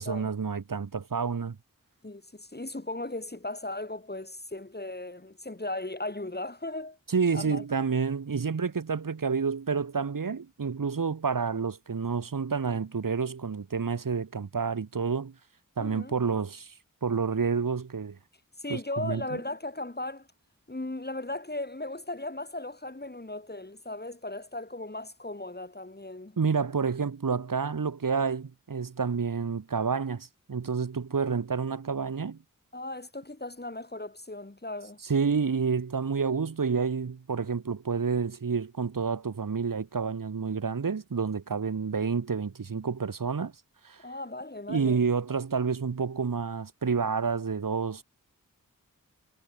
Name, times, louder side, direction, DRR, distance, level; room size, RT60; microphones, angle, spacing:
voice 1, 0.0-1.6 7.1-15.3 15.8-16.7 17.0-18.2 18.7-19.4 26.4-32.4 35.0-43.5 43.8-44.0 44.7-48.0, right 5 dB, 75° right, 1.6 m, -29 dB
voice 2, 2.0-7.0 7.3-7.6 15.8-16.1 18.6-20.3 20.7-26.4 32.7-35.0 44.0-45.0, left 2 dB, 30° left, 4.9 m, -37 dB
wide cardioid pair, 55°, 33 cm